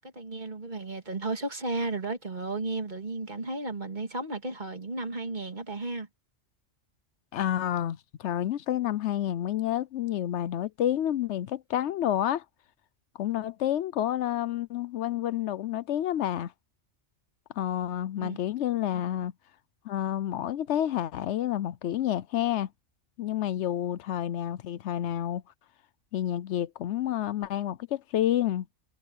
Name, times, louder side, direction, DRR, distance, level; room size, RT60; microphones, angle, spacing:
voice 1, 0.0-6.1 18.2-18.4, right 2 dB, 40° right, 2.1 m, -34 dB
voice 2, 7.3-12.4 13.2-16.5 17.6-19.3 19.8-22.7 23.2-25.4 26.1-28.7, left 11 dB, 75° left, 0.9 m, -29 dB
omnidirectional pair, 1.2 m